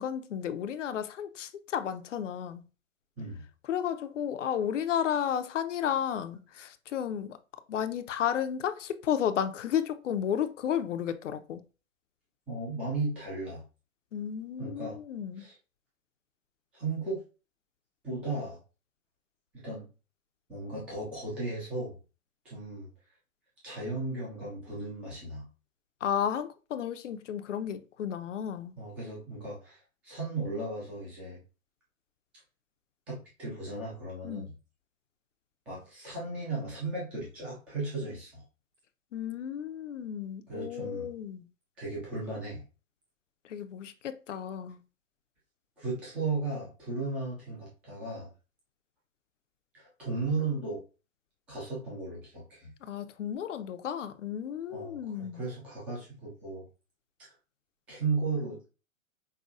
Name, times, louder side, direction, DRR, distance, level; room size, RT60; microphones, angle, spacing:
voice 1, 0.0-2.6 3.7-7.4 7.7-11.6 14.1-15.4 26.0-28.8 34.2-34.5 39.1-41.5 43.4-44.8 52.8-55.4, left 9 dB, 60° left, 0.5 m, -33 dB
voice 2, 12.5-13.6 14.6-15.0 15.4-15.5 16.7-17.2 18.0-18.6 19.5-19.9 20.5-22.0 22.4-22.9 23.6-25.5 28.8-31.4 33.1-34.5 35.7-38.4 40.5-41.1 41.8-42.6 45.8-48.3 49.7-50.8 51.5-52.7 54.7-56.6 57.2-57.3 57.9-58.7, right 3 dB, 5° right, 0.4 m, -35 dB
5.4 x 2.2 x 2.4 m
figure-of-eight pair, 120°, 42 cm